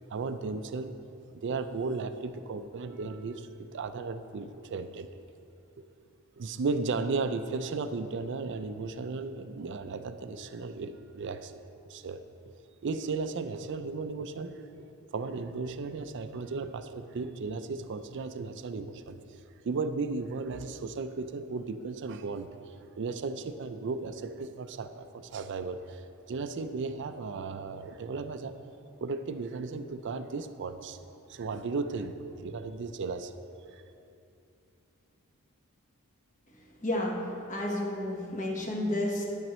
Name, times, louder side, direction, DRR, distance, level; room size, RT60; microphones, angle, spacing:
voice 1, 0.1-1.0 1.3-5.1 6.4-11.5 11.9-12.2 12.8-19.2 19.6-28.5 29.0-31.0 31.3-33.3 33.7-33.8, right 4 dB, 55° right, 10 dB, 0.4 m, -35 dB
voice 2, 36.8-37.2 37.5-39.3, left 1 dB, 35° left, -1 dB, 1.1 m, -31 dB
10.5 x 8.9 x 3.1 m, 2.7 s
head